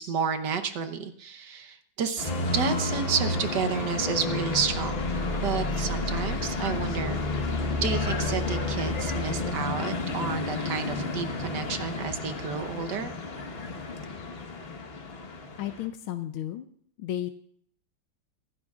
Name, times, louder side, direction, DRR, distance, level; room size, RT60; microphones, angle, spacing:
voice 1, 0.0-5.1 5.4-7.2 7.8-13.1, right 6 dB, 65° right, 8 dB, 1.5 m, -31 dB
sound 1, 2.2-9.5, left 2 dB, 60° left, 0.4 m, -31 dB
sound 2, 2.2-15.9, left 3 dB, 35° left, 1.2 m, -34 dB
voice 2, 15.6-16.7 17.0-17.3, left 12 dB, 90° left, 8 dB, 1.5 m, -33 dB
25.0 x 11.5 x 2.4 m, 0.64 s
omnidirectional pair, 2.2 m